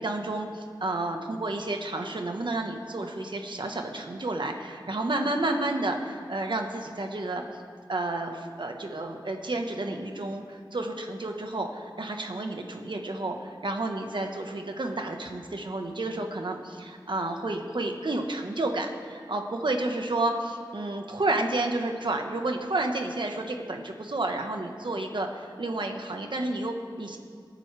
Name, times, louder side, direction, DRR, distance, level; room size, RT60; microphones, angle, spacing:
voice 1, 0.0-7.4 7.9-27.2, right 2 dB, 70° right, 3 dB, 1.4 m, -31 dB
28.0 x 9.3 x 3.5 m, 2.1 s
wide cardioid pair, 60°, 8 cm